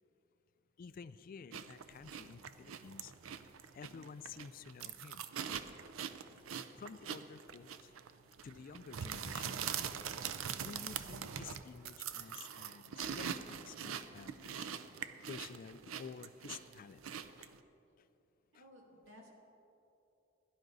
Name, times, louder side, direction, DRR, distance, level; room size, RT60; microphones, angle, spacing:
voice 1, 0.8-3.1 3.7-5.3 6.8-7.9 8.4-9.7 10.5-14.7 15.3-17.0 17.4-17.5 18.0-18.1, left 6 dB, 45° left, 14 dB, 0.3 m, -51 dB
sound 1, 1.5-17.6, right 8 dB, 80° right, 0.5 m, -43 dB
voice 2, 18.5-19.3, equal, 65° right, -1 dB, 2.3 m, -57 dB
17.0 x 11.0 x 4.0 m, 2.8 s
head